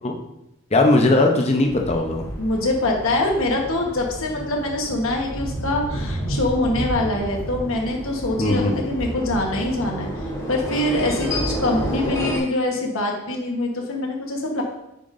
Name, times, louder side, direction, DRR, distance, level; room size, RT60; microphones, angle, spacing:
voice 1, 0.7-2.3 8.4-8.8, left 2 dB, 30° left, 2 dB, 0.7 m, -19 dB
sound 1, 1.6-12.4, equal, 10° left, 1.7 m, -30 dB
voice 2, 2.4-10.1 10.5-14.6, left 1 dB, 65° left, 0 dB, 1.3 m, -24 dB
8.6 x 5.8 x 2.6 m, 0.87 s
head